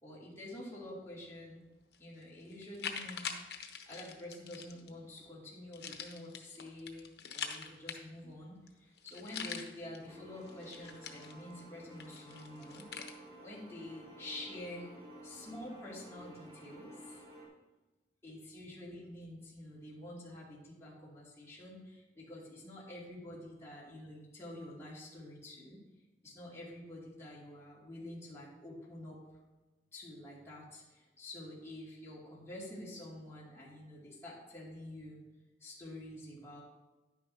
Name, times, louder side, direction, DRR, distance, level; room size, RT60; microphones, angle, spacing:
voice 1, 0.0-1.6 2.0-12.9 13.4-14.9 15.2-17.2 18.2-25.8 26.2-29.2 29.9-35.2 35.6-36.6, left 1 dB, 15° left, -7 dB, 2.5 m, -48 dB
sound 1, 1.9-2.0 2.5-4.9 5.7-8.3 8.7-8.8 9.0-10.0 10.4-11.6 12.0-13.1, left 6 dB, 70° left, 1.0 m, -44 dB
sound 2, 10.0-17.5, right 1 dB, 30° right, 2.7 m, -53 dB
10.5 x 9.5 x 2.9 m, 1.1 s
head